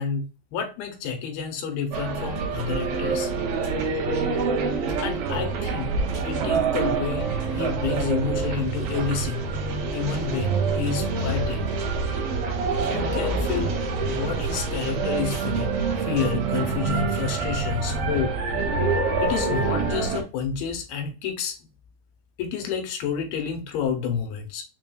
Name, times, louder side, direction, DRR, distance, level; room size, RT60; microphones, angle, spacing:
voice 1, 0.0-3.3 5.0-6.0 6.3-9.4 9.9-11.7 12.9-15.7 16.0-18.4 19.2-21.6 22.4-24.6, left 6 dB, 75° left, 2.7 m, -29 dB
sound 1, 1.9-20.2, right 4 dB, 70° right, 2.7 m, -26 dB
6.9 x 2.6 x 2.2 m
omnidirectional pair, 4.7 m